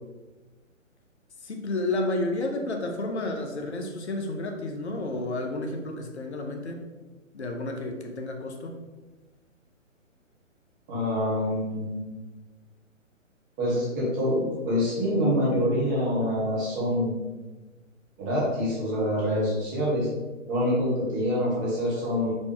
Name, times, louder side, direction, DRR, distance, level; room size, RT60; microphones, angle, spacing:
voice 1, 1.4-6.8 7.3-8.8, left 2 dB, 55° left, 3 dB, 0.8 m, -31 dB
voice 2, 10.9-11.9 13.6-17.1 18.2-20.1 20.5-22.3, equal, 15° right, -5 dB, 0.8 m, -26 dB
4.3 x 3.4 x 3.1 m, 1.2 s
figure-of-eight pair, 135°, 40 cm